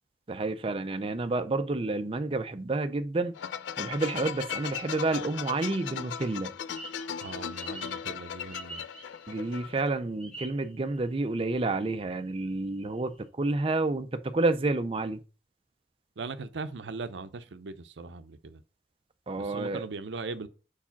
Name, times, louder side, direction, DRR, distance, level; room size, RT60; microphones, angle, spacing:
voice 1, 0.3-3.3 3.8-6.5 9.3-15.2 19.3-19.9, right 2 dB, 30° right, 0.5 m, -29 dB
sound 1, 3.3-9.9, left 8 dB, 85° left, 0.4 m, -37 dB
sound 2, 6.7-9.6 10.2-11.3 11.6-11.7 12.1-13.2, right 2 dB, 5° left, 1.3 m, -46 dB
voice 2, 7.2-8.8 16.2-18.6 19.4-20.5, right 3 dB, 85° right, 0.6 m, -39 dB
4.8 x 4.8 x 5.7 m
head